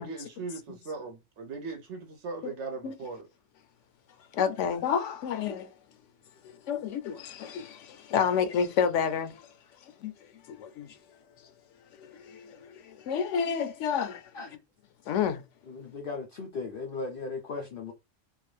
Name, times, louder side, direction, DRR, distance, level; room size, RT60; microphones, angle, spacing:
voice 1, 0.0-3.3, right 4 dB, 70° right, 1.0 m, -39 dB
voice 2, 4.3-5.7 6.4-9.5 10.0-10.1 10.5-11.0 12.0-14.3 15.1-15.4, left 7 dB, 85° left, 1.0 m, -30 dB
voice 3, 15.7-17.9, left 4 dB, 55° left, 0.8 m, -37 dB
3.6 x 2.5 x 3.2 m
omnidirectional pair, 1.2 m